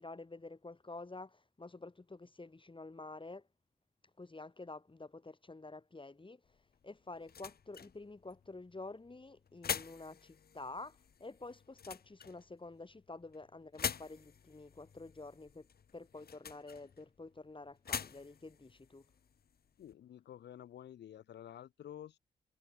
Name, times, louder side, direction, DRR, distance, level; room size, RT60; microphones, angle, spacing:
voice 1, 0.0-3.5 4.2-19.1, left 3 dB, 30° left, 3.2 m, -49 dB
sound 1, 6.4-19.9, left 7 dB, 65° left, 2.4 m, -46 dB
voice 2, 19.8-22.2, left 10 dB, 85° left, 3.8 m, -51 dB
supercardioid pair, 45°, 17 cm